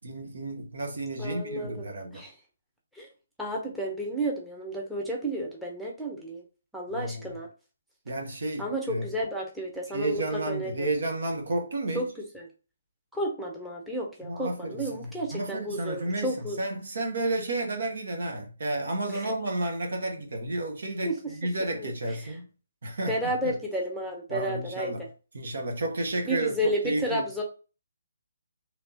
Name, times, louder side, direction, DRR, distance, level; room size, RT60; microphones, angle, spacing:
voice 1, 0.0-2.2 6.9-7.3 8.1-9.1 9.9-12.1 14.3-22.5 22.8-23.6 24.3-25.0 25.3-27.3, right 2 dB, 60° right, 1.1 m, -32 dB
voice 2, 1.2-1.9 2.1-2.3 3.0-3.1 3.4-6.4 6.7-7.5 8.6-10.9 11.9-12.1 12.3-12.5 13.1-16.6 19.2-19.3 21.0-21.3 21.8-21.9 23.1-24.9 26.2-27.4, right 1 dB, ahead, 0.8 m, -32 dB
3.4 x 2.9 x 2.9 m
figure-of-eight pair, 140°, 0 cm